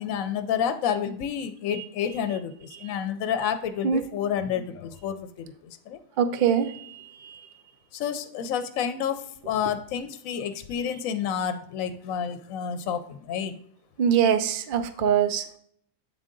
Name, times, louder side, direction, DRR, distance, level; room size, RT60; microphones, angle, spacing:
voice 1, 0.0-6.0 7.9-13.6, left 8 dB, 80° left, 10 dB, 1.0 m, -29 dB
voice 2, 6.2-7.0 7.2-7.4 14.0-15.6, right 8 dB, 65° right, 8 dB, 0.5 m, -23 dB
8.4 x 3.7 x 3.7 m, 0.63 s
omnidirectional pair, 1.4 m